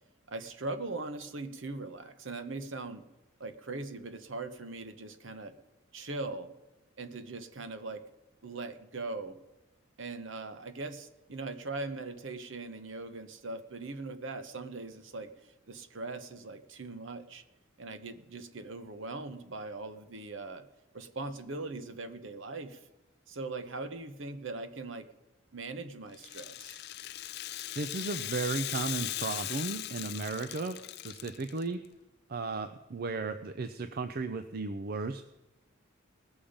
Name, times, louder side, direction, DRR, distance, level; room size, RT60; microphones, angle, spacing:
voice 1, 0.3-3.1 3.4-5.6 5.9-6.5 7.0-8.0 8.4-9.4 10.0-15.3 15.7-17.4 17.8-20.6 20.9-22.8 23.3-25.1 25.5-26.8, right 3 dB, 60° right, 10 dB, 0.9 m, -40 dB
Rattle (instrument), 26.1-31.6, left 15 dB, 50° left, 0.3 m, -39 dB
voice 2, 27.8-31.8 32.3-35.2, right 3 dB, 45° right, 9 dB, 0.5 m, -35 dB
19.0 x 7.1 x 5.1 m, 1.1 s
head